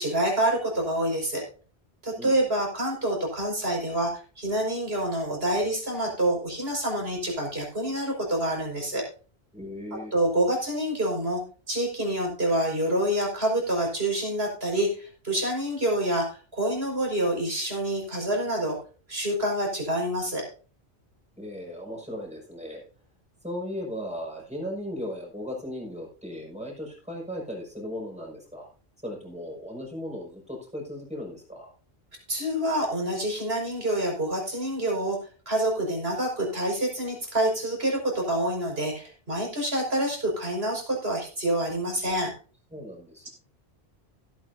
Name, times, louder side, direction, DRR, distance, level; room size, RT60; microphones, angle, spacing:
voice 1, 0.0-1.4 2.0-9.0 10.1-11.4 11.7-18.8 19.1-20.5 32.3-35.2 35.5-42.3, right 1 dB, 65° right, -1 dB, 5.5 m, -27 dB
voice 2, 9.5-10.1 21.4-22.8 23.4-28.7 29.0-31.7 42.7-43.3, left 1 dB, 5° right, -2 dB, 5.8 m, -37 dB
17.0 x 9.3 x 2.7 m, 0.37 s
omnidirectional pair, 1.1 m